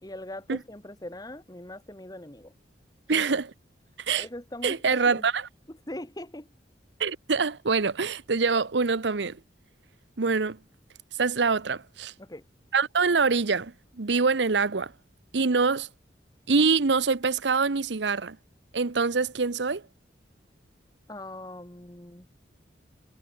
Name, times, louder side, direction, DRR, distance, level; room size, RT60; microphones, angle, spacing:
voice 1, 0.0-2.5 3.1-3.3 4.2-5.3 5.7-6.5 12.2-12.4 21.1-22.3, left 1 dB, 20° left, 1.6 m, -41 dB
voice 2, 3.1-3.5 4.1-4.2 4.6-5.4 7.0-9.4 10.2-10.6 11.2-12.1 12.7-13.7 14.0-14.9 15.3-15.9 16.5-18.4 18.7-19.8, right 4 dB, 75° right, 0.8 m, -24 dB
head